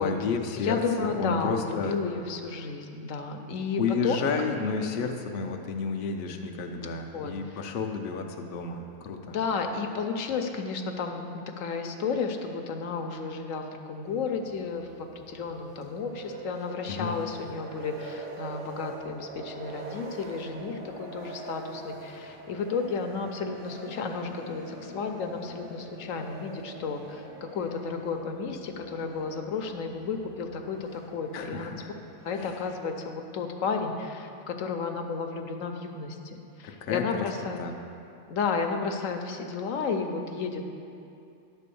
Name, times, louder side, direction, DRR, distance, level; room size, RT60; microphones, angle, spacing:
voice 1, 0.0-2.0 3.8-9.4 16.9-17.2 31.3-31.9 32.4-32.5 36.6-37.3 37.6-37.8, left 5 dB, 50° left, 4 dB, 0.7 m, -31 dB
voice 2, 0.6-4.3 7.1-7.3 9.3-31.7 32.2-37.6 38.3-40.7, left 5 dB, 75° left, 4 dB, 1.0 m, -32 dB
sound 1, 14.0-33.1, right 3 dB, 85° right, 1.6 m, -44 dB
11.0 x 4.2 x 6.9 m, 2.6 s
omnidirectional pair, 1.4 m